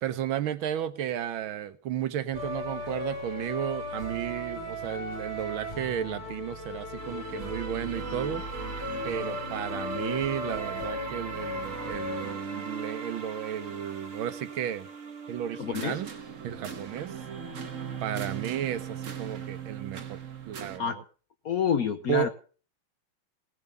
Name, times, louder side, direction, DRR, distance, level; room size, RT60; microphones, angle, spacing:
voice 1, 0.0-8.5 9.0-14.9 15.3-16.1 16.4-17.2 18.0-21.0 22.1-22.3, right 10 dB, 75° right, 1.7 m, -33 dB
sound 1, 2.3-12.3, left 1 dB, 20° left, 2.7 m, -37 dB
sound 2, 7.0-20.8, right 5 dB, 40° right, 1.5 m, -39 dB
voice 2, 15.6-16.0 20.8-21.0 21.4-22.3, left 7 dB, 60° left, 1.0 m, -28 dB
17.5 x 7.2 x 6.9 m
omnidirectional pair, 2.3 m